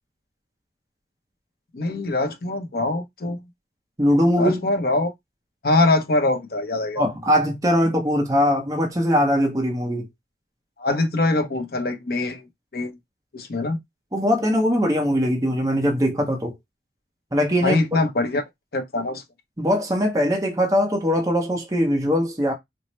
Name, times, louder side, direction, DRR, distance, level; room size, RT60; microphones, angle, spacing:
voice 1, 1.7-3.4 4.4-5.1 5.6-7.1 10.8-12.4 12.7-13.0 13.3-13.8 17.6-18.4 18.7-19.2, left 2 dB, 55° left, 0.7 m, -23 dB
voice 2, 4.0-4.6 7.0-10.1 14.1-16.5 17.3-17.8 19.6-22.5, equal, 20° right, 0.7 m, -21 dB
4.3 x 2.0 x 3.0 m
head